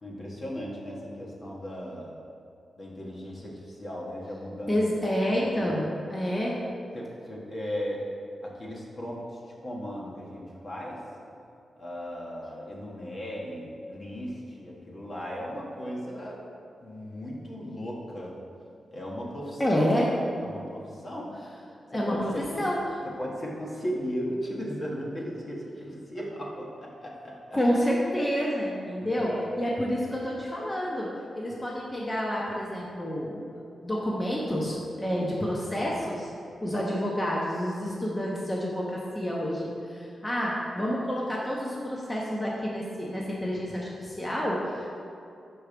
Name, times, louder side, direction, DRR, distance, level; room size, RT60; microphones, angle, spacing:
voice 1, 0.0-2.1 2.8-4.8 5.3-5.8 6.9-8.0 8.4-9.2 9.6-11.0 11.8-16.4 16.8-18.3 18.9-19.8 20.4-21.4 21.9-22.6 23.2-27.4 29.0-29.4, equal, 50° left, -4 dB, 1.4 m, -36 dB
voice 2, 4.7-6.6 19.6-20.1 21.9-22.8 27.5-33.4 33.8-36.3 36.6-44.9, equal, 20° left, -4 dB, 1.0 m, -29 dB
5.5 x 4.7 x 5.1 m, 2.6 s
cardioid pair, 75°, 0 cm